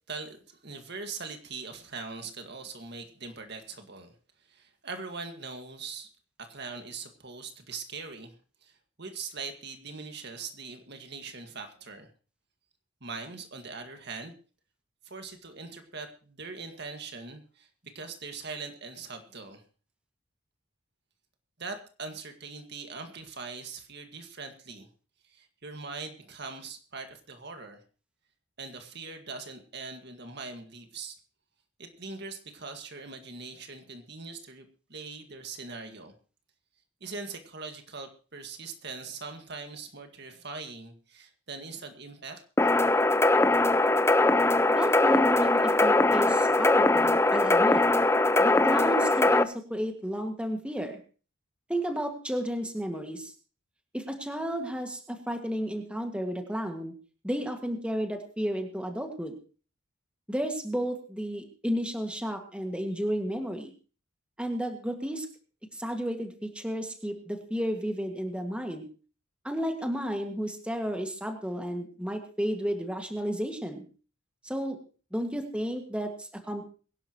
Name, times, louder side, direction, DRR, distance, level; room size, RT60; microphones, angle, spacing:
voice 1, 0.1-4.1 4.5-6.1 6.4-8.4 8.6-12.1 13.0-14.3 15.0-19.6 21.6-24.9 25.2-27.8 28.6-31.2 31.8-36.1 37.0-42.4, right 4 dB, 55° right, 5 dB, 1.9 m, -41 dB
sound 1, 42.6-49.4, left 2 dB, 10° left, 0.5 m, -22 dB
voice 2, 44.8-47.8 48.4-51.0 51.7-53.3 53.9-56.9 57.2-59.3 60.3-63.7 64.4-65.3 65.7-68.8 69.4-73.8 74.4-74.8 75.1-76.6, equal, 5° right, 4 dB, 1.9 m, -32 dB
23.0 x 11.5 x 3.0 m, 0.37 s
head